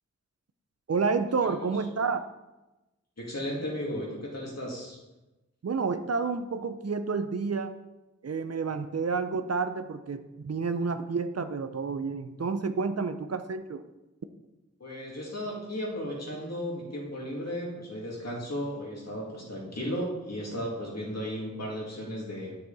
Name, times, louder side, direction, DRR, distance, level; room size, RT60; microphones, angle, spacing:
voice 1, 0.9-2.2 5.6-7.7 8.2-13.8, right 4 dB, 55° right, 10 dB, 0.6 m, -30 dB
voice 2, 3.2-5.0 14.8-22.6, equal, 60° left, -3 dB, 2.5 m, -35 dB
9.3 x 6.9 x 4.2 m, 1.0 s
wide cardioid pair, 60°, 29 cm